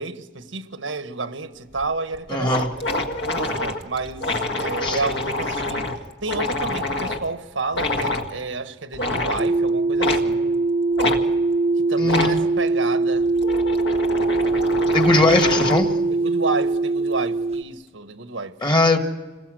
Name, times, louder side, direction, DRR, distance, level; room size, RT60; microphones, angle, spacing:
voice 1, 0.0-2.9 3.3-5.9 6.2-10.6 11.9-13.3 16.1-18.6, right 3 dB, 85° right, 1.4 m, -30 dB
sound 1, 1.8-1.9 2.1-2.2 2.4-7.3 7.7-8.3 8.9-9.5 10.0-10.3 11.0-11.2 12.0-12.4 13.1-15.9, left 2 dB, 60° left, 1.8 m, -26 dB
voice 2, 2.3-2.7 4.8-5.0 12.0-12.4 14.9-15.9 18.6-19.0, left 2 dB, 25° left, 1.7 m, -20 dB
sound 2, 9.4-17.6, right 3 dB, 30° right, 0.7 m, -22 dB
27.0 x 21.0 x 7.7 m
head